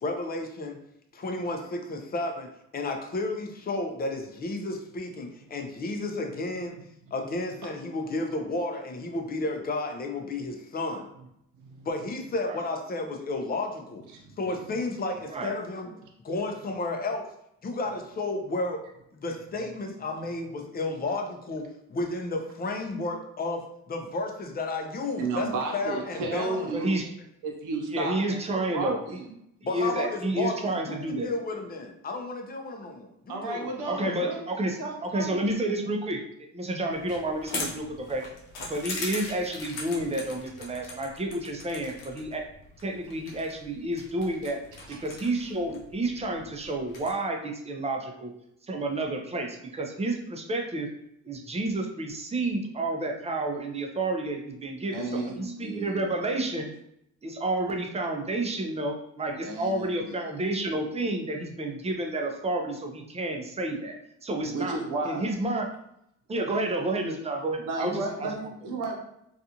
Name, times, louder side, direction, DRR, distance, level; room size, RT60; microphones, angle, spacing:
voice 1, 0.0-0.8 1.1-6.8 7.1-11.1 11.8-14.0 14.4-16.0 16.2-17.3 17.6-18.8 19.1-26.7 29.6-30.6 30.9-33.9, left 2 dB, 30° left, 4 dB, 0.5 m, -32 dB
voice 2, 11.6-11.9 14.1-14.2 14.5-14.7 25.2-26.9 27.4-29.3 33.3-34.4 34.8-35.4 44.9-45.0 54.9-56.1 59.4-60.1 64.5-65.2 67.7-68.9, right 3 dB, 80° right, 1 dB, 0.7 m, -33 dB
voice 3, 26.7-27.1 27.9-29.0 29.7-31.3 33.9-36.2 36.5-38.2 38.7-42.4 42.8-44.6 44.9-48.3 48.7-50.9 51.2-56.7 57.2-64.8 65.0-65.7 66.3-68.4, right 2 dB, 20° right, 2 dB, 0.5 m, -30 dB
sound 1, 36.9-47.1, left 3 dB, 90° left, 0.7 m, -41 dB
2.4 x 2.4 x 2.8 m, 0.77 s
cardioid pair, 85°, 31 cm